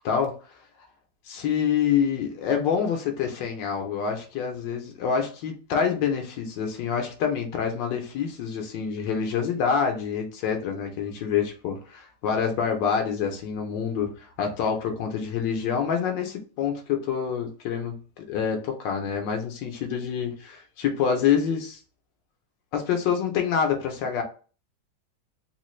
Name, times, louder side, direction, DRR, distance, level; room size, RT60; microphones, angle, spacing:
voice 1, 1.3-21.8 22.7-24.2, left 7 dB, 90° left, 1.4 m, -27 dB
3.8 x 2.4 x 3.0 m
omnidirectional pair, 1.9 m